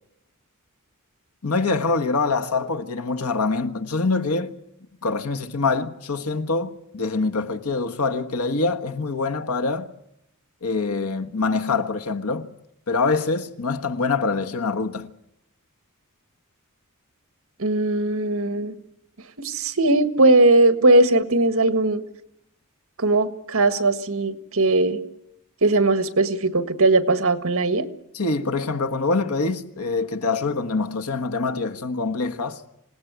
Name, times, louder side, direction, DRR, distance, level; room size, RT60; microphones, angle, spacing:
voice 1, 1.4-4.6 5.0-9.9 10.6-12.5 12.9-15.1 28.1-32.6, left 3 dB, 85° left, 1.5 m, -25 dB
voice 2, 17.6-18.7 19.4-22.0 23.0-25.0 25.6-27.9, right 2 dB, 65° right, 1.6 m, -19 dB
26.5 x 18.0 x 8.2 m
head